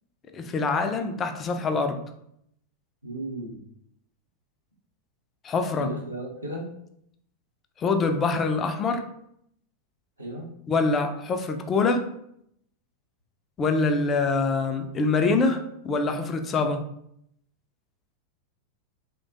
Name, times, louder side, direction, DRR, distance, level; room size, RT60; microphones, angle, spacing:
voice 1, 0.3-2.0 5.4-5.9 7.8-9.0 10.7-12.1 13.6-16.8, left 3 dB, 25° left, 6 dB, 0.3 m, -25 dB
voice 2, 3.0-3.6 5.7-6.7 10.2-10.5, right 2 dB, 85° right, -5 dB, 0.6 m, -35 dB
3.0 x 2.1 x 2.5 m, 0.73 s
figure-of-eight pair, 90°, 0 cm